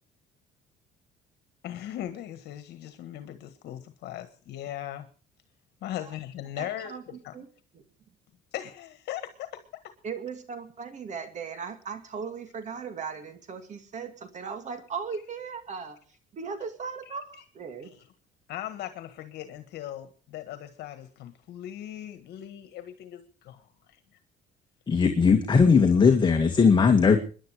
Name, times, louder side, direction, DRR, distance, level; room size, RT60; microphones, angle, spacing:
voice 1, 1.6-5.1 5.8-6.9 7.2-7.3 8.5-9.6 17.1-17.4 17.8-18.0 18.5-23.7, left 12 dB, 75° left, 9 dB, 1.5 m, -39 dB
voice 2, 6.6-7.0 7.3-7.5 7.7-7.8 10.0-16.0 16.3-17.9, right 6 dB, 45° right, 9 dB, 2.3 m, -37 dB
voice 3, 24.9-27.2, left 5 dB, 25° left, 5 dB, 2.0 m, -19 dB
26.0 x 11.0 x 4.9 m, 0.40 s
cardioid pair, 115°, 17 cm